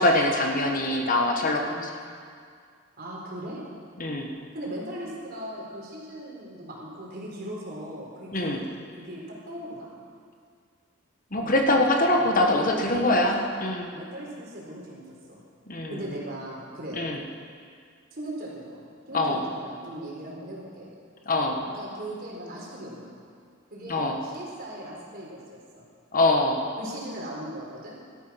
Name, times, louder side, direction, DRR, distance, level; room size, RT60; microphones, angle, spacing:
voice 1, 0.0-1.9 4.0-4.3 8.3-8.6 11.3-13.9 15.7-16.0 16.9-17.2 19.1-19.4 21.3-21.6 23.9-24.2 26.1-26.6, left 2 dB, 45° left, 2 dB, 1.5 m, -23 dB
voice 2, 3.0-3.6 4.5-9.9 11.3-13.3 13.7-15.0 15.3-15.4 15.9-17.1 18.1-18.8 19.1-20.9 21.7-23.1 23.7-25.8 26.8-27.9, right 1 dB, 50° right, -3 dB, 4.2 m, -39 dB
17.5 x 12.5 x 5.9 m, 2.2 s
head